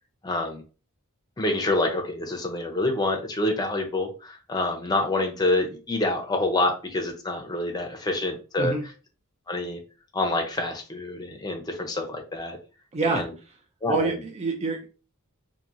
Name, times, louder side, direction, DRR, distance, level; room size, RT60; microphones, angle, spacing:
voice 1, 0.2-0.6 1.4-8.8 9.5-9.8 10.1-12.6 13.0-13.3 13.8-14.2, left 2 dB, 20° left, 2 dB, 0.6 m, -27 dB
voice 2, 12.9-13.2 13.9-14.8, right 3 dB, 30° right, 4 dB, 0.4 m, -26 dB
2.8 x 2.6 x 2.5 m, 0.34 s
head